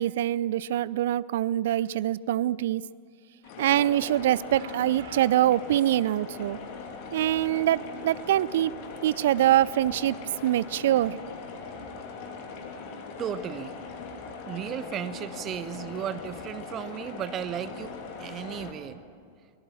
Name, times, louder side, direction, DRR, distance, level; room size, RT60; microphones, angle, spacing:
voice 1, 0.0-2.8 3.6-6.6 7.1-8.7 9.0-10.2 10.4-11.2, right 13 dB, 55° right, 21 dB, 0.5 m, -24 dB
sound 1, 3.4-18.7, left 4 dB, 45° left, 2.9 m, -40 dB
voice 2, 13.2-13.7 14.5-19.0, right 9 dB, 30° right, 13 dB, 1.1 m, -35 dB
24.5 x 19.5 x 7.4 m, 2.2 s
figure-of-eight pair, 90°, 0 cm